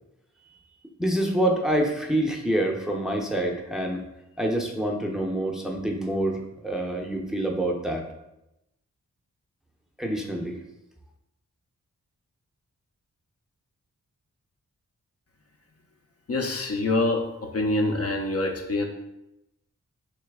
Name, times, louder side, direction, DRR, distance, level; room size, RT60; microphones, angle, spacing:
voice 1, 1.0-4.0 4.4-8.0 10.0-10.6, right 1 dB, ahead, 1 dB, 0.6 m, -26 dB
voice 2, 16.3-18.8, left 2 dB, 50° left, 2 dB, 0.5 m, -25 dB
3.2 x 3.0 x 3.5 m, 0.88 s
cardioid pair, 55°, 32 cm